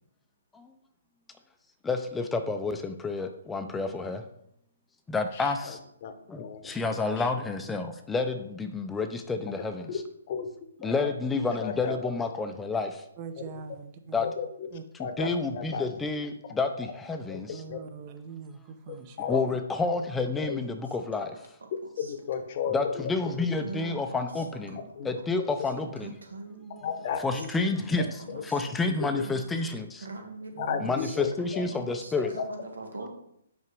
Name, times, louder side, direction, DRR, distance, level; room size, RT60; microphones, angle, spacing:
voice 1, 1.8-4.2 5.1-5.8 6.3-10.0 10.8-13.0 14.1-14.3 15.2-17.6 19.3-21.4 22.7-24.8 25.0-26.1 27.2-28.2 28.4-30.0 30.8-32.4, left 3 dB, 10° left, 6 dB, 0.5 m, -30 dB
voice 2, 5.3-6.1 6.4-7.3 9.5-10.0 10.3-10.5 10.9-11.0 11.6-12.0 14.2-14.7 15.0-15.9 17.3-17.4 17.7-17.8 19.2-19.4 20.4-20.6 22.0-23.1 25.0-25.1 26.8-27.5 28.3-28.4 28.8-29.1 30.6-31.6 32.2-32.3, left 7 dB, 45° left, 8 dB, 0.8 m, -34 dB
voice 3, 13.2-14.3 14.7-14.8 17.5-19.3 30.6-30.8, right 6 dB, 30° right, 8 dB, 0.7 m, -42 dB
voice 4, 23.6-24.9 25.8-26.9 27.3-29.6 30.0-33.1, right 3 dB, 85° right, 4 dB, 1.6 m, -43 dB
5.7 x 4.8 x 4.6 m, 0.75 s
hypercardioid pair, 145°, 0 cm